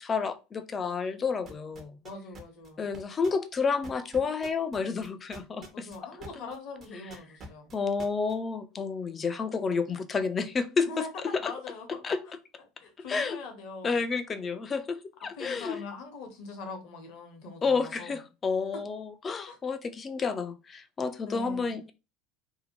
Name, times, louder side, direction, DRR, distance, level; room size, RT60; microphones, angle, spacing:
voice 1, 0.0-2.0 2.8-5.9 6.3-6.4 7.7-11.5 12.0-12.2 13.1-13.4 13.8-15.8 17.6-21.9, left 5 dB, 30° left, 0.4 m, -30 dB
sound 1, 1.5-6.6 6.8-8.3, right 2 dB, 35° right, 0.6 m, -45 dB
voice 2, 2.0-3.0 5.7-7.7 10.8-12.0 12.8-14.1 15.3-18.2 19.4-19.6 21.2-21.8, left 3 dB, 55° left, 0.8 m, -42 dB
2.7 x 2.1 x 2.8 m
figure-of-eight pair, 70°, 0 cm